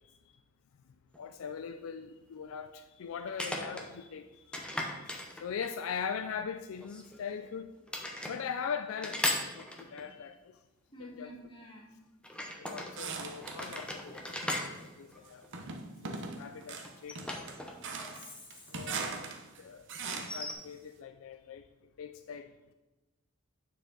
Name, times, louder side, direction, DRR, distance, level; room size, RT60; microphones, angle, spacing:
sound 1, 1.1-1.2 3.3-3.9 4.5-5.9 6.8-7.5 7.9-8.4 9.0-10.1 12.2-12.9 13.4-15.8 16.8-18.1 18.4-18.5 20.1-20.5, left 1 dB, 5° left, 0.9 m, -37 dB
voice 1, 1.2-4.6 4.8-5.0 5.4-7.7 8.3-10.3 11.0-11.3 12.6-14.2 14.5-15.4 16.2-17.2 18.7-19.2 19.6-19.8 20.1-21.6 22.0-22.5, left 6 dB, 70° left, 8 dB, 0.4 m, -40 dB
voice 2, 10.9-12.0 17.8-18.8, left 1 dB, 25° left, -2 dB, 1.6 m, -50 dB
sound 2, 12.9-13.9 14.3-14.9 15.5-20.5, right 4 dB, 60° right, 0.8 m, -40 dB
9.3 x 4.6 x 3.9 m, 1.1 s
head